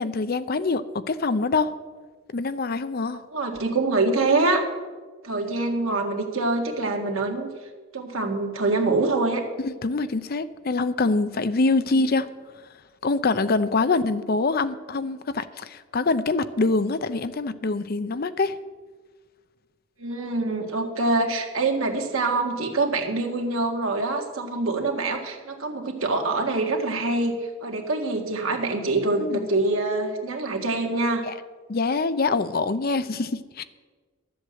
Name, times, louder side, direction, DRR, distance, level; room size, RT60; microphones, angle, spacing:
voice 1, 0.0-1.7 2.3-3.2 9.6-12.3 13.0-18.6 29.2-29.5 31.2-31.3 31.7-33.6, left 3 dB, 50° left, 13 dB, 0.6 m, -25 dB
voice 2, 3.1-4.6 5.2-7.5 7.9-9.4 11.9-12.0 20.0-31.2, right 3 dB, 90° right, 2 dB, 1.9 m, -25 dB
12.5 x 7.9 x 7.5 m, 1.4 s
head